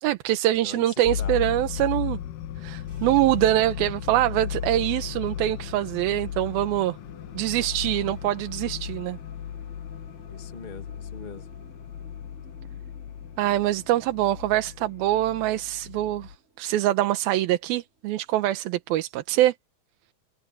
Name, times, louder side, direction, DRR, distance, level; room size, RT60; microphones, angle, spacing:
voice 1, 0.0-2.2 2.6-7.0 7.4-9.2 13.4-19.5, right 14 dB, 80° right, 2.7 m, -24 dB
voice 2, 0.5-1.4 10.3-11.5, left 4 dB, 40° left, 0.6 m, -42 dB
sound 1, 1.1-16.4, left 10 dB, 70° left, 2.5 m, -36 dB
sound 2, 2.8-18.9, right 4 dB, 20° right, 5.0 m, -54 dB
omnidirectional pair, 4.4 m